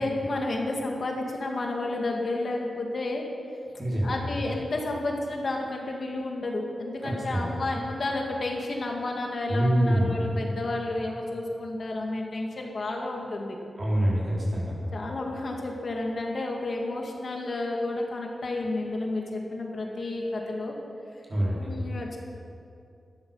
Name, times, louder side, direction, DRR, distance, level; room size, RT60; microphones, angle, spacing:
voice 1, 0.0-3.2 4.0-13.6 14.9-20.7 21.6-22.2, left 2 dB, 50° left, 0 dB, 2.1 m, -31 dB
voice 2, 3.8-4.3 7.0-7.5 9.5-10.2 13.8-14.7 21.3-21.7, equal, 35° right, -6 dB, 5.1 m, -25 dB
18.5 x 13.5 x 5.7 m, 2.5 s
wide cardioid pair, 145°, 0 cm